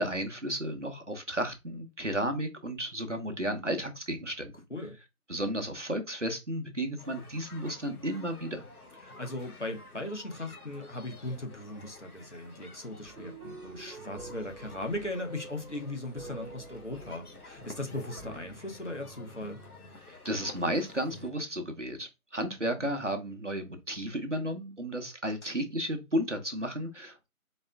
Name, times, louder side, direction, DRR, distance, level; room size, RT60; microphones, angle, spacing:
voice 1, 0.0-4.5 5.3-8.6 20.1-27.3, equal, 55° right, 0.8 m, -33 dB
sound 1, 7.0-21.3, left 2 dB, 85° left, 1.2 m, -50 dB
voice 2, 9.0-19.6 22.8-22.9 25.4-25.5, left 1 dB, 55° left, 0.9 m, -38 dB
sound 2, 13.0-18.6, right 4 dB, 85° right, 0.9 m, -48 dB
4.1 x 2.4 x 3.3 m
figure-of-eight pair, 180°, 44 cm